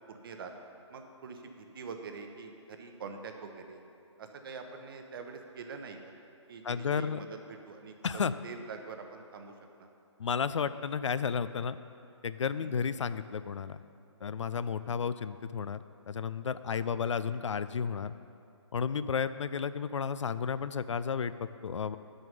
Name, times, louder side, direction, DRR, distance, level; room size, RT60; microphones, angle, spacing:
voice 1, 0.1-0.5 0.9-3.8 4.2-6.0 6.5-7.9 8.4-9.5 9.8-9.9 12.6-12.8 16.7-16.9, right 5 dB, 50° right, 5 dB, 0.9 m, -45 dB
voice 2, 6.6-7.2 8.0-8.3 10.2-11.8 12.2-13.8 14.2-15.8 16.1-18.1 18.7-22.0, left 6 dB, 75° left, 14 dB, 0.4 m, -32 dB
9.2 x 6.4 x 5.2 m, 2.6 s
figure-of-eight pair, 140°, 16 cm